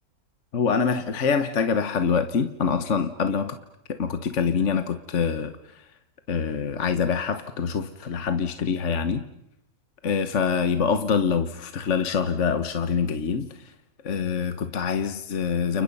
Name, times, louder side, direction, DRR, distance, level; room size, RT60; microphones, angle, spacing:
voice 1, 0.5-3.6 3.9-5.9 6.3-9.3 10.0-13.7 14.0-15.8, left 6 dB, 55° left, 9 dB, 1.5 m, -25 dB
30.0 x 30.0 x 5.5 m, 0.80 s
omnidirectional pair, 1.6 m